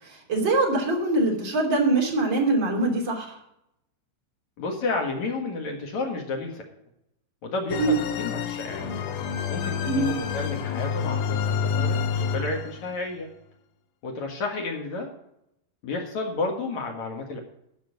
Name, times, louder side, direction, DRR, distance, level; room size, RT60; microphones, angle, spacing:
voice 1, 0.0-3.4 7.8-8.0 9.9-10.1, right 2 dB, 30° right, -1 dB, 2.5 m, -23 dB
voice 2, 4.6-6.6 7.4-8.9 9.5-13.3 14.0-15.1 15.8-17.4, left 3 dB, 60° left, 1 dB, 1.9 m, -31 dB
sound 1, 7.7-12.9, left 6 dB, 90° left, 2.2 m, -28 dB
14.5 x 5.5 x 8.0 m, 0.81 s
omnidirectional pair, 5.8 m